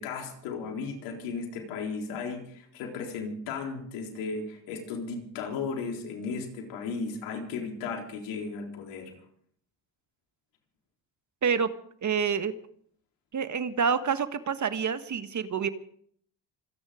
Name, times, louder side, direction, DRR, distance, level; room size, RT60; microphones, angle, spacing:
voice 1, 0.0-9.1, left 4 dB, 90° left, 2 dB, 4.0 m, -35 dB
voice 2, 12.0-12.5 13.3-15.7, right 6 dB, 45° right, 11 dB, 1.6 m, -27 dB
26.0 x 10.0 x 5.1 m, 0.62 s
supercardioid pair, 80°, 41 cm